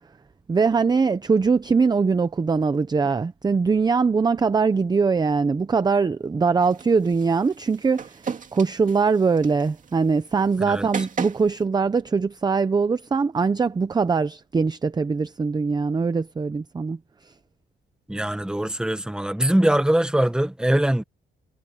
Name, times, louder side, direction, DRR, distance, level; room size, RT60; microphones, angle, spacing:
voice 1, 0.5-8.2 8.5-17.0, right 5 dB, 20° right, 0.6 m, -22 dB
sound 1, 6.6-11.6, right 6 dB, 40° right, 2.1 m, -37 dB
voice 2, 18.1-21.0, right 1 dB, 5° right, 1.2 m, -22 dB
wide cardioid pair, 165°, 20 cm